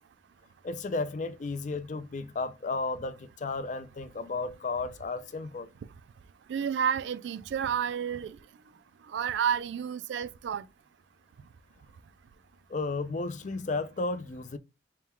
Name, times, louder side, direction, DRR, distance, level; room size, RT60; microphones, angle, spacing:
voice 1, 0.6-5.7 12.7-14.6, left 3 dB, 40° left, 0.4 m, -33 dB
voice 2, 6.5-8.4 9.1-10.7, right 8 dB, 75° right, 0.3 m, -30 dB
3.7 x 2.2 x 4.3 m
head